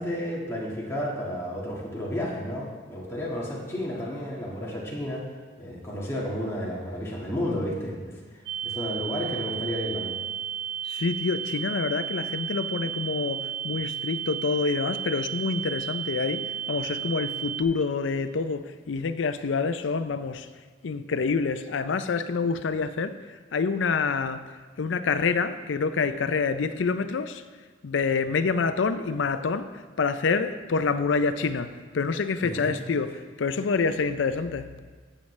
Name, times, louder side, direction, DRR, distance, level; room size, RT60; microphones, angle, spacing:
voice 1, 0.0-5.2 5.6-10.2 32.4-32.7, equal, 15° left, 1.7 m, -32 dB
sound 1, 8.5-17.6, right 9 dB, 80° right, 0.9 m, -33 dB
voice 2, 10.8-20.5 20.8-24.4 24.8-27.4 27.8-34.7, left 4 dB, 90° left, 0.5 m, -27 dB
13.5 x 7.5 x 3.2 m
head